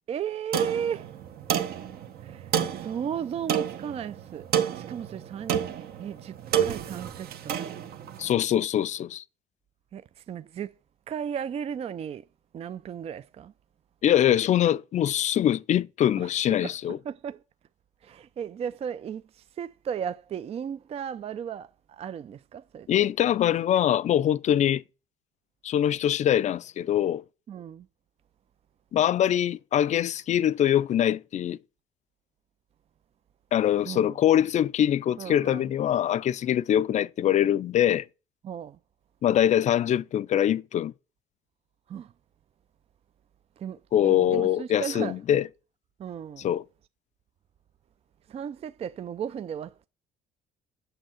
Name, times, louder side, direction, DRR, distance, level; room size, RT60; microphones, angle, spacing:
voice 1, 0.1-1.1 2.2-4.4 4.7-6.3 6.6-7.6 9.9-10.7 11.1-12.2 12.5-13.5 16.2-16.3 16.6-17.4 18.0-23.1 27.5-27.9 33.9-34.2 35.2-35.7 38.4-38.8 41.9-42.1 43.6-45.2 46.0-46.5 48.3-49.9, right 8 dB, 35° right, 0.4 m, -35 dB
sound 1, 0.5-8.3, right 9 dB, 65° right, 1.1 m, -30 dB
voice 2, 8.2-9.2 14.0-17.0 22.9-24.8 25.6-27.2 28.9-31.6 33.5-38.0 39.2-40.9 43.9-45.5 46.4-46.6, left 11 dB, 45° left, 0.4 m, -23 dB
7.9 x 6.3 x 7.6 m
cardioid pair, 110°, 17 cm